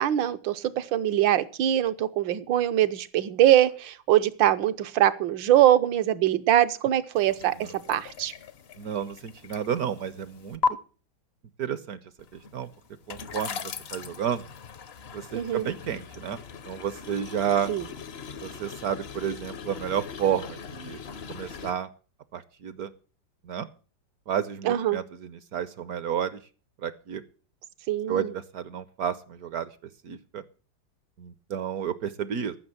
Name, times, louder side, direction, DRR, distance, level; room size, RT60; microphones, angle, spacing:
voice 1, 0.0-8.3 15.3-15.7 17.7-17.8 24.6-25.0 27.9-28.3, right 12 dB, 80° right, 12 dB, 1.5 m, -23 dB
sound 1, 7.1-10.7 12.2-21.7, left 5 dB, 55° left, 0.7 m, -38 dB
voice 2, 8.8-10.8 11.6-12.0 12.3-12.7 13.1-14.4 15.1-16.4 16.7-17.7 18.4-21.0 21.3-21.9 22.3-22.9 23.4-23.7 24.3-26.4 26.8-27.2 28.1-29.7 30.0-30.4 31.2-32.6, right 8 dB, 65° right, 15 dB, 1.0 m, -31 dB
14.0 x 6.4 x 7.7 m, 0.39 s
omnidirectional pair, 2.1 m